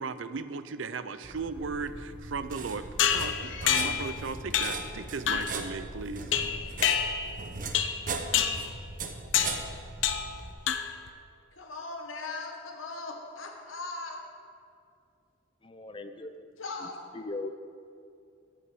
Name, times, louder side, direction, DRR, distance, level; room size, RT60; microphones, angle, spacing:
voice 1, 0.0-6.2, right 4 dB, 70° right, 12 dB, 0.5 m, -36 dB
sound 1, 1.2-10.5, right 3 dB, 40° right, 0.8 m, -39 dB
sound 2, 3.0-4.1 4.5-4.9 5.3-5.6 6.3-7.4 7.7-8.0 8.3-8.7 9.3-9.6 10.0-10.4 10.7-11.1, left 9 dB, 65° left, 0.6 m, -27 dB
voice 2, 11.5-14.2 16.6-17.0, left 3 dB, 85° left, 2 dB, 1.4 m, -39 dB
voice 3, 15.6-16.3 17.1-17.6, left 2 dB, 25° left, 8 dB, 0.5 m, -38 dB
8.4 x 8.1 x 7.6 m, 2.4 s
head